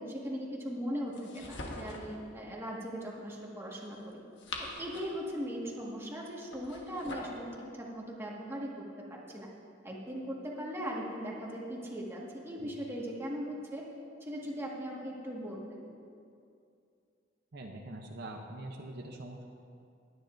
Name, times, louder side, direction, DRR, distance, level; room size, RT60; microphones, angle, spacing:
voice 1, 0.0-4.2 4.6-7.5 7.7-8.7 9.1-9.5 9.8-13.8 14.2-15.9, equal, 15° right, -4 dB, 1.7 m, -39 dB
sound 1, 1.1-2.2 4.1-5.3 6.5-7.4, left 2 dB, 75° left, 1.4 m, -43 dB
voice 2, 17.5-19.5, right 1 dB, 60° right, 2 dB, 0.8 m, -43 dB
20.0 x 9.7 x 2.6 m, 2.4 s
head